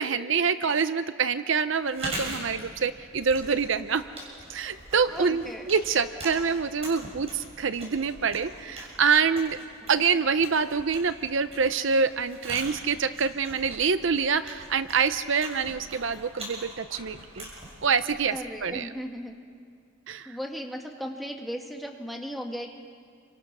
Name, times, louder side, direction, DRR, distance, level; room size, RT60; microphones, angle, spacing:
voice 1, 0.0-4.0 4.5-9.6 9.9-17.5 17.8-18.3 18.6-18.9 20.1-20.4, right 5 dB, 60° right, 12 dB, 0.6 m, -26 dB
Chewing mastication, 1.8-18.6, right 1 dB, 30° right, 6.8 m, -42 dB
voice 2, 5.1-5.7 9.8-9.9 18.3-19.4 20.3-22.7, equal, ahead, 1 dB, 2.0 m, -36 dB
29.0 x 25.5 x 6.1 m, 2.2 s
head